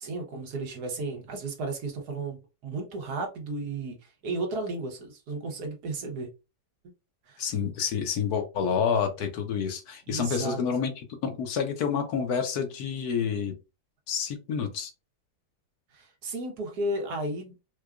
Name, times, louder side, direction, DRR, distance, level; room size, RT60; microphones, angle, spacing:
voice 1, 0.0-6.3 7.3-7.4 10.1-10.6 15.9-17.5, right 2 dB, 70° right, 1.5 m, -34 dB
voice 2, 7.4-13.5 14.1-14.9, left 6 dB, 70° left, 1.2 m, -28 dB
4.6 x 2.3 x 2.4 m
omnidirectional pair, 1.8 m